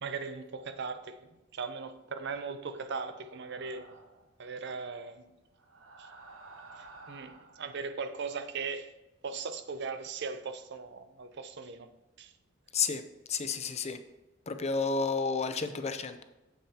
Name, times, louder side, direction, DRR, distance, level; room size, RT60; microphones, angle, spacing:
voice 1, 0.0-3.9 4.4-5.3 6.0-6.1 6.8-8.9 9.2-11.9 12.2-12.3, right 5 dB, 60° right, 0.6 m, -39 dB
sound 1, 3.1-4.3 5.5-7.7, right 3 dB, 90° right, 1.1 m, -52 dB
voice 2, 13.3-14.0 14.5-16.2, left 5 dB, 35° left, 0.5 m, -31 dB
8.8 x 7.4 x 2.9 m
head